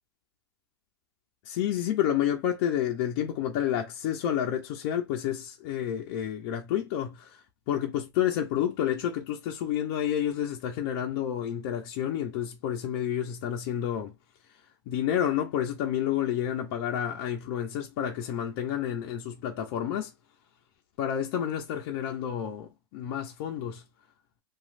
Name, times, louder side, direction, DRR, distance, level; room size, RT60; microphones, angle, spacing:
voice 1, 1.4-14.1 14.9-20.1 21.0-23.8, left 10 dB, 55° left, 0.6 m, -30 dB
3.1 x 2.4 x 2.4 m
hypercardioid pair, 120°, 13 cm